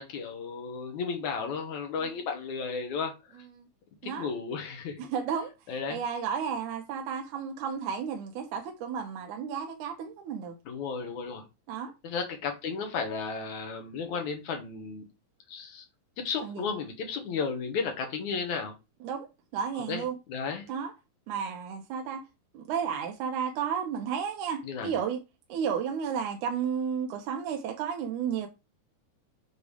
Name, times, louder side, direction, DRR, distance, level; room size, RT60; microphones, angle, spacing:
voice 1, 0.0-3.1 4.0-5.0 5.7-6.0 10.7-11.4 12.0-15.0 15.5-15.8 16.2-18.7 19.9-20.7 24.6-24.9, left 5 dB, 65° left, 2.5 m, -34 dB
voice 2, 5.0-5.5 5.9-10.6 11.7-11.9 16.4-16.6 19.0-19.3 19.5-20.2 20.7-20.9 21.3-22.2 22.5-25.2 25.5-28.5, right 7 dB, 75° right, 2.2 m, -32 dB
7.0 x 3.7 x 4.9 m
omnidirectional pair, 3.8 m